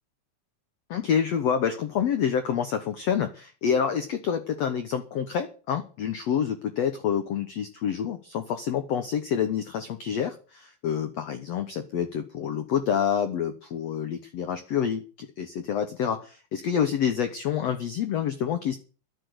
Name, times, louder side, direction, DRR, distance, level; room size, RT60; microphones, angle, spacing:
voice 1, 0.9-18.8, left 8 dB, 90° left, 9 dB, 1.4 m, -27 dB
12.0 x 6.9 x 9.6 m, 0.38 s
omnidirectional pair, 4.5 m